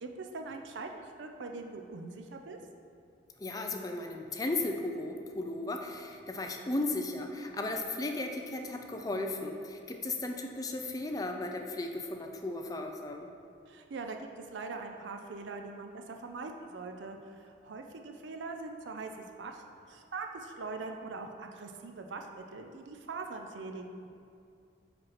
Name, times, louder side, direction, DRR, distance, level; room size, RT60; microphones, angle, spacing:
voice 1, 0.0-2.6 13.7-24.1, right 3 dB, 85° right, 4 dB, 0.5 m, -42 dB
voice 2, 3.4-13.3, left 2 dB, 20° left, 3 dB, 0.4 m, -35 dB
5.1 x 4.4 x 5.7 m, 2.5 s
head